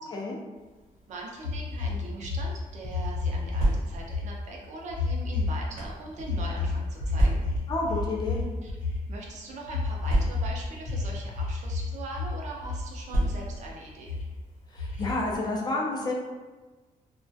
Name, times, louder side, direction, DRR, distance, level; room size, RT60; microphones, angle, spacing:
voice 1, 1.1-7.5 8.6-8.7 9.1-14.1, right 2 dB, 55° right, -1 dB, 0.4 m, -41 dB
sound 1, 1.4-3.7 3.9-4.3 4.9-5.8 6.2-9.1 9.7-10.5 10.8-11.9 12.1-12.8 13.1-13.7 14.1-14.2 14.8-15.4, left 4 dB, 65° left, 0.7 m, -30 dB
sound 2, 3.5-4.2 5.0-6.0 7.1-7.7 8.6-8.8 9.0-9.1 10.0-10.7 11.6-11.8 13.1-13.7, right 1 dB, 90° right, 0.8 m, -28 dB
voice 2, 7.7-8.4 14.7-16.1, left 2 dB, 30° left, -2 dB, 0.3 m, -30 dB
2.2 x 2.1 x 2.6 m, 1.2 s
wide cardioid pair, 175°, 14 cm